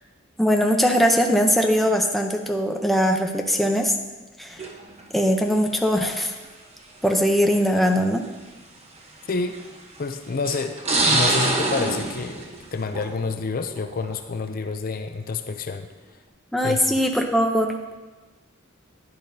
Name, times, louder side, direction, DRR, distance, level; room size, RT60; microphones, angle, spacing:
voice 1, 0.4-3.9 4.4-4.6 5.1-6.3 7.0-8.2 16.5-17.7, equal, ahead, 2 dB, 0.6 m, -21 dB
sound 1, 4.6-5.0 6.1-6.2 7.3-7.4 7.9-8.0 9.4-9.8 10.4-13.3 13.7-14.1, right 2 dB, 35° right, 1.0 m, -25 dB
voice 2, 9.3-9.6 10.0-10.8 11.1-12.4 12.7-15.9 16.6-16.8, left 4 dB, 45° left, 7 dB, 0.5 m, -28 dB
10.5 x 10.0 x 2.8 m, 1.2 s
head